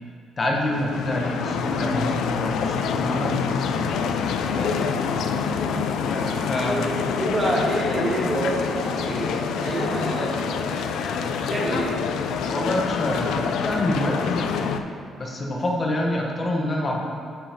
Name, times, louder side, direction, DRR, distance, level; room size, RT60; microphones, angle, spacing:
voice 1, 0.4-3.3 6.1-7.0 12.5-14.6 15.2-17.1, left 1 dB, 35° left, -1 dB, 1.1 m, -26 dB
sound 1, 0.6-14.8, left 6 dB, 80° left, 0.4 m, -26 dB
voice 2, 4.4-5.0 6.6-6.9 7.2-11.0 11.5-11.9, right 1 dB, 35° right, -3 dB, 1.6 m, -28 dB
10.5 x 5.6 x 2.9 m, 2.5 s
cardioid pair, 90°, 0 cm